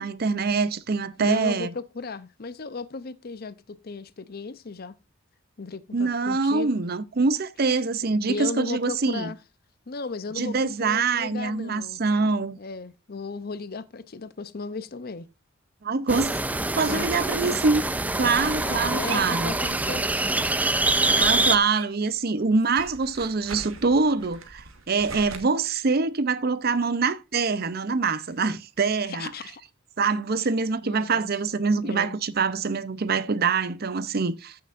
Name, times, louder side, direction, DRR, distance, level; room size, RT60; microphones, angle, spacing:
voice 1, 0.0-1.7 5.9-9.3 10.4-12.6 15.8-16.4 16.8-17.8 18.1-19.6 21.1-29.3 30.0-34.6, right 4 dB, 50° right, 0.6 m, -25 dB
voice 2, 1.2-5.0 5.6-6.8 7.7-7.8 8.3-9.4 9.9-12.0 12.6-15.3 16.8-17.1 17.4-17.6 18.6-20.5 29.1-29.6 30.4-30.5 30.8-31.3 31.8-32.2, left 4 dB, 50° left, 0.6 m, -36 dB
sound 1, 16.1-21.6, right 2 dB, 10° right, 0.4 m, -25 dB
sound 2, 18.2-20.0 20.3-22.1 22.4-25.4, right 4 dB, 90° right, 1.7 m, -41 dB
14.5 x 6.7 x 2.5 m
head